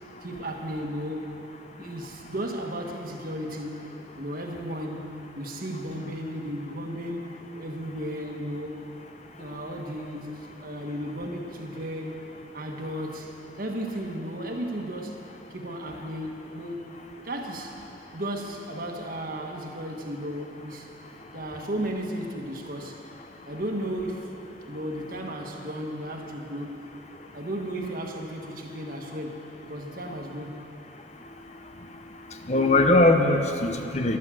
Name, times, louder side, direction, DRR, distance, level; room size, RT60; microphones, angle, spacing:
voice 1, 0.2-1.4 1.8-3.9 4.2-7.3 7.6-8.9 9.4-12.2 12.5-15.2 15.5-17.0 17.2-17.8 18.1-20.9 21.3-23.0 23.5-24.3 24.7-26.9 27.3-30.5, equal, 55° right, 2 dB, 1.5 m, -34 dB
voice 2, 31.2-31.9 32.3-34.2, left 2 dB, 40° left, 5 dB, 0.9 m, -22 dB
13.0 x 12.0 x 7.7 m, 2.9 s
head